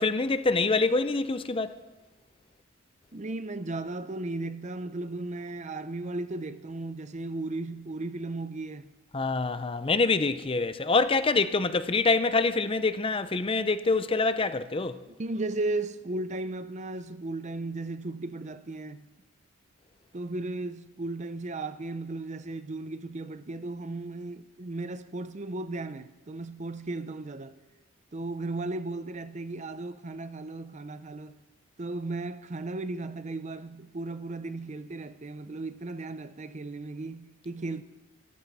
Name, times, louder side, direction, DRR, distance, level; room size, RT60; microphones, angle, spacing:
voice 1, 0.0-1.8 9.1-15.0, left 3 dB, 25° left, 0.5 m, -25 dB
voice 2, 3.1-8.9 15.1-19.1 20.1-27.6 28.1-31.3 31.8-37.8, right 2 dB, 35° right, 0.6 m, -35 dB
24.0 x 14.0 x 4.1 m
head